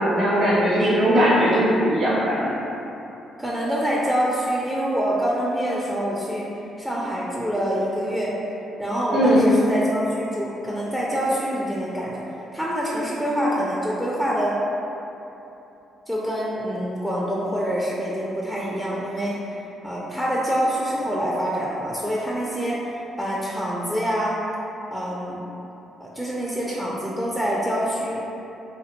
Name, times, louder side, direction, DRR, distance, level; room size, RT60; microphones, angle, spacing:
voice 1, 0.0-2.5 9.1-9.5, equal, 70° right, -8 dB, 0.5 m, -19 dB
voice 2, 3.4-6.5 6.8-8.4 8.8-12.2 12.5-14.6 16.1-19.4 19.8-24.4 24.9-25.4 26.0-28.2, equal, ahead, -5 dB, 0.4 m, -26 dB
2.4 x 2.0 x 2.8 m, 2.9 s
hypercardioid pair, 50°, 0 cm